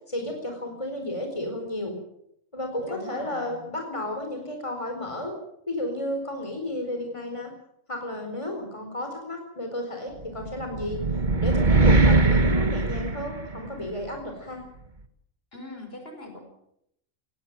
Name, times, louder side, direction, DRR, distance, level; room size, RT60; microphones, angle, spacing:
voice 1, 0.1-1.9 2.5-5.3 5.7-7.5 7.9-11.0 11.4-14.6, left 1 dB, 25° left, 4 dB, 4.4 m, -32 dB
voice 2, 2.8-3.6 15.5-16.4, left 2 dB, 50° left, 5 dB, 5.4 m, -41 dB
sound 1, 10.4-13.8, right 3 dB, 35° right, 1.6 m, -21 dB
20.5 x 18.0 x 9.0 m, 0.76 s
omnidirectional pair, 1.4 m